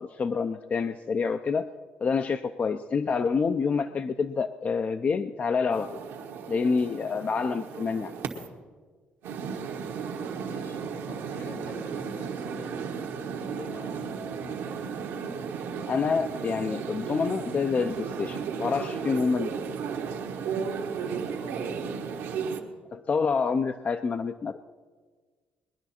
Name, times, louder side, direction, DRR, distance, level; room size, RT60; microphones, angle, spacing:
voice 1, 0.0-1.7 2.0-6.0 6.5-8.1 15.9-19.5 22.9-24.6, left 5 dB, 40° left, 10 dB, 0.4 m, -27 dB
sound 1, 5.7-8.5 9.2-22.6, right 6 dB, 85° right, 1.3 m, -34 dB
voice 2, 10.2-12.9 13.5-14.9 21.1-21.9, left 3 dB, 80° left, 2 dB, 4.0 m, -48 dB
21.0 x 10.5 x 4.3 m, 1.5 s
cardioid pair, 95°, 4 cm